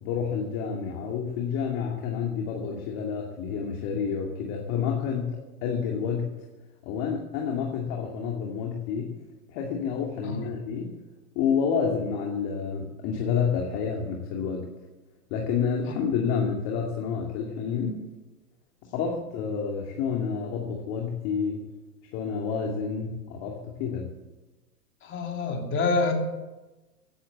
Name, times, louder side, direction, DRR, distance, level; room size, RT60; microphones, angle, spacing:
voice 1, 0.0-6.3 6.8-9.1 9.5-10.9 11.3-14.7 15.3-18.0 18.9-21.6 22.1-24.1, left 6 dB, 40° left, 1 dB, 2.6 m, -29 dB
voice 2, 25.0-26.1, left 3 dB, 25° left, 2 dB, 3.1 m, -27 dB
16.5 x 10.0 x 8.2 m, 1.1 s
hypercardioid pair, 120°, 47 cm